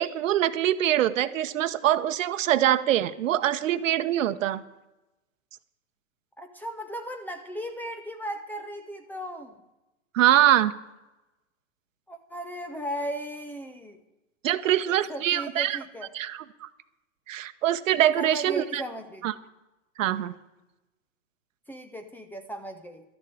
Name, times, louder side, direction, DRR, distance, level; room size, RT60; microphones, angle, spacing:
voice 1, 0.0-4.6 10.1-10.7 14.4-15.8 16.1-16.7 17.3-18.8 19.2-19.3 20.0-20.3, right 12 dB, 70° right, 13 dB, 1.0 m, -24 dB
voice 2, 6.4-9.5 12.1-14.0 14.6-14.7 15.1-16.1 18.2-19.3 21.7-23.0, equal, 5° left, 7 dB, 0.6 m, -36 dB
13.0 x 7.0 x 9.2 m, 0.99 s
hypercardioid pair, 130°, 41 cm